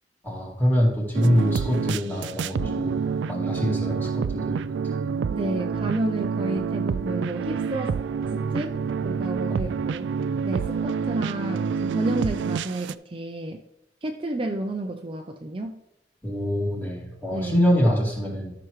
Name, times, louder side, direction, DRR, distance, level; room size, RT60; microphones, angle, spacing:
voice 1, 0.2-2.9 3.3-4.6 5.0-5.1 9.5-9.7 16.2-18.5, equal, 10° left, -3 dB, 2.5 m, -24 dB
sound 1, 1.1-12.9, right 6 dB, 80° right, 0.3 m, -28 dB
voice 2, 5.3-8.0 8.3-8.8 9.0-10.1 10.4-13.6 14.0-15.8 17.3-17.6, right 1 dB, 30° right, 4 dB, 0.5 m, -30 dB
13.0 x 6.0 x 3.2 m, 0.89 s
head